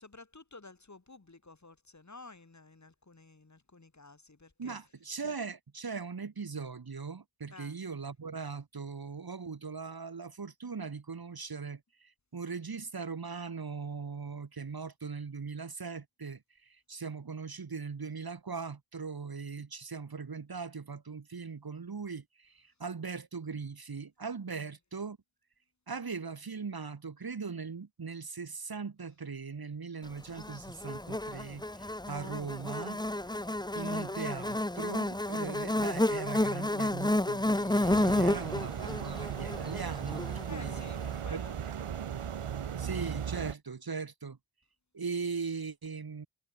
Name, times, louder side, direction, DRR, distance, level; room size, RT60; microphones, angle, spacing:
voice 1, 0.0-4.8 7.5-7.8 24.5-24.7 38.2-39.3 40.5-41.9, left 3 dB, 35° left, 3.8 m, -53 dB
voice 2, 4.6-25.2 25.9-33.0 33.7-40.8 41.3-41.5 42.8-44.4 44.9-46.3, right 5 dB, 45° right, 1.9 m, -40 dB
Buzz, 30.4-40.8, left 1 dB, 10° left, 1.3 m, -31 dB
sound 1, 37.8-43.5, right 8 dB, 85° right, 2.0 m, -37 dB
cardioid pair, 45°, 49 cm